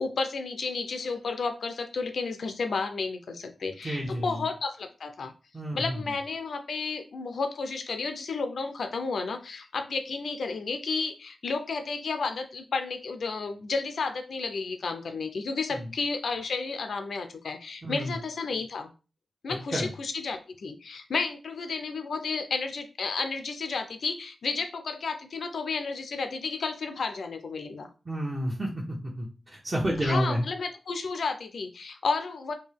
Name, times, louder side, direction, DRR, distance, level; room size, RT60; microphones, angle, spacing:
voice 1, 0.0-5.3 5.7-18.9 19.4-27.9 30.0-32.5, left 4 dB, 80° left, 7 dB, 0.6 m, -32 dB
voice 2, 3.8-4.4 5.5-6.0 15.7-15.9 17.8-18.1 19.7-19.9 28.1-30.4, equal, 25° right, -4 dB, 1.1 m, -30 dB
4.5 x 2.8 x 3.3 m, 0.33 s
wide cardioid pair, 125°, 0 cm